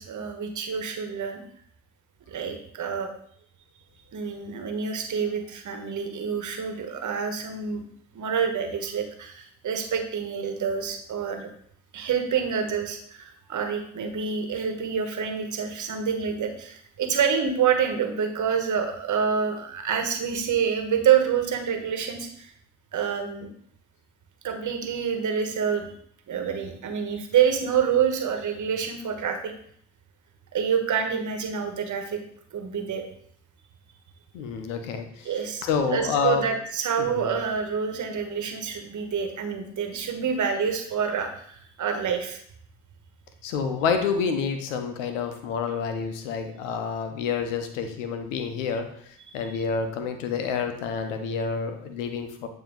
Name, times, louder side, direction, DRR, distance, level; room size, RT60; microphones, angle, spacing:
voice 1, 0.0-1.4 2.3-3.1 4.1-7.8 8.1-11.5 11.9-22.5 22.9-23.5 24.4-25.9 26.3-29.5 30.5-32.2 32.5-33.0 35.2-42.4 49.2-49.5, right 7 dB, 55° right, 5 dB, 1.3 m, -27 dB
voice 2, 34.3-35.3 35.6-36.5 37.0-37.3 43.4-52.5, left 6 dB, 90° left, 7 dB, 0.8 m, -28 dB
8.8 x 3.0 x 3.8 m, 0.64 s
hypercardioid pair, 50°, 36 cm